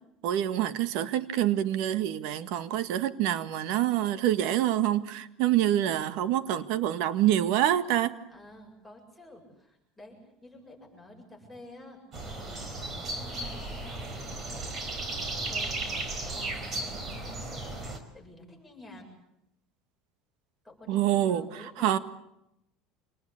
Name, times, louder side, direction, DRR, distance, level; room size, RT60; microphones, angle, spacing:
voice 1, 0.2-8.1 20.9-21.5 21.8-22.0, right 12 dB, 70° right, 1.7 m, -26 dB
voice 2, 8.3-17.9 18.1-19.1 20.6-22.0, left 1 dB, ahead, 7.6 m, -50 dB
sound 1, 12.1-18.0, right 2 dB, 35° right, 4.6 m, -35 dB
27.5 x 19.5 x 8.6 m
supercardioid pair, 130°, 0 cm